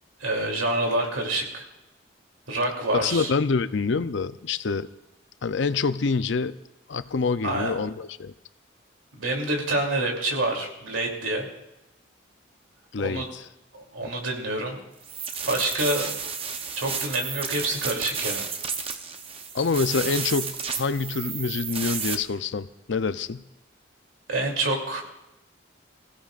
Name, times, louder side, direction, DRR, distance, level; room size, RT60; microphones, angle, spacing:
voice 1, 0.2-1.6 2.5-3.3 7.4-7.8 9.2-11.5 13.0-13.3 13.7-14.8 15.5-16.1 16.8-18.4 24.3-25.0, right 2 dB, 90° right, 1 dB, 2.9 m, -27 dB
voice 2, 2.9-4.9 5.4-6.5 6.9-8.3 12.9-13.5 14.0-14.1 19.5-23.4, left 4 dB, 65° left, 13 dB, 0.5 m, -26 dB
sound 1, 15.0-22.2, right 6 dB, 30° right, 0.8 m, -32 dB
26.0 x 16.0 x 2.5 m, 0.92 s
head